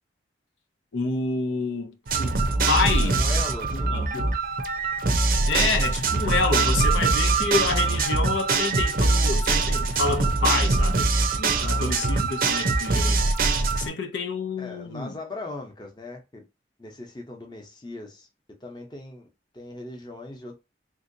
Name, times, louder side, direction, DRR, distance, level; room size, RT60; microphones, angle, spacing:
voice 1, 0.9-2.4 2.7-3.2 3.9-4.3 5.5-11.1 11.4-13.2 13.8-15.2, left 4 dB, 80° left, 0.7 m, -28 dB
sound 1, 2.1-13.9, right 3 dB, 50° right, 0.6 m, -23 dB
voice 2, 3.0-4.1 14.6-16.4 16.8-18.3 18.6-19.3 19.5-20.6, left 2 dB, 25° left, 0.8 m, -39 dB
3.6 x 2.8 x 2.6 m
head